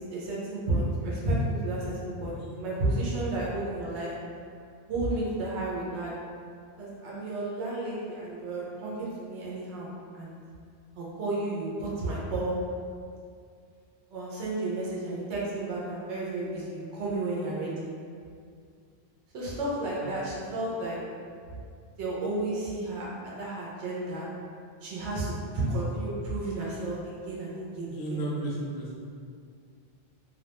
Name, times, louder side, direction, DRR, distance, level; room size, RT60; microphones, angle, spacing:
voice 1, 0.1-4.1 4.9-6.1 6.8-10.3 11.0-12.6 14.1-17.9 19.3-21.0 22.0-24.3 24.8-28.4, right 2 dB, 85° right, -6 dB, 0.9 m, -32 dB
voice 2, 27.8-29.0, right 1 dB, 60° left, -4 dB, 0.6 m, -34 dB
2.3 x 2.1 x 2.8 m, 2.2 s
omnidirectional pair, 1.1 m